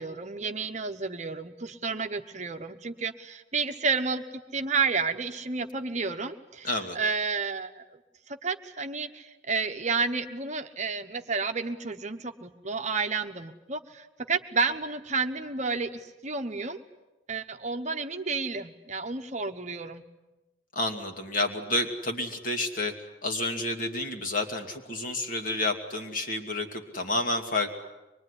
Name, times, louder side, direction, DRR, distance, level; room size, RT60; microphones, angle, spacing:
voice 1, 0.0-4.2 4.5-6.7 6.9-7.8 8.3-16.8 17.3-20.0, right 4 dB, 35° right, 6 dB, 1.1 m, -31 dB
voice 2, 6.6-7.0 20.7-22.9 23.2-27.8, left 2 dB, 45° left, 4 dB, 2.5 m, -30 dB
24.5 x 22.5 x 9.9 m, 1.0 s
head